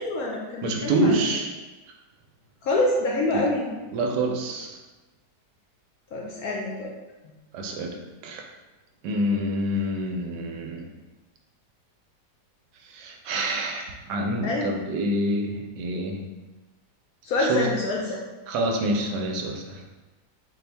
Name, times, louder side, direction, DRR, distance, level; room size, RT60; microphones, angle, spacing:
voice 1, 0.0-1.2 2.6-3.7 6.1-6.9 14.4-14.7 17.2-18.2, left 2 dB, 70° left, -2 dB, 0.9 m, -26 dB
voice 2, 0.6-1.5 3.3-3.5 3.9-4.8 7.5-8.4 9.0-10.9 12.8-16.2 17.4-17.7 18.5-19.9, right 1 dB, 75° right, 2 dB, 1.1 m, -27 dB
4.1 x 2.6 x 3.3 m, 1.1 s
omnidirectional pair, 1.9 m